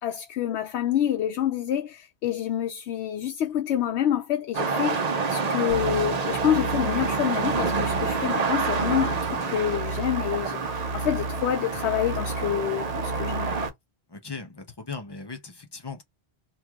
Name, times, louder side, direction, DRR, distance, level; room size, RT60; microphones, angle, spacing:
voice 1, 0.0-13.5, left 10 dB, 80° left, 0.9 m, -27 dB
sound 1, 4.5-13.7, right 4 dB, 45° right, 0.7 m, -28 dB
sound 2, 5.7-13.7, right 2 dB, 65° right, 1.0 m, -34 dB
voice 2, 14.1-16.0, left 4 dB, 30° left, 0.5 m, -38 dB
3.1 x 2.3 x 3.5 m
omnidirectional pair, 1.1 m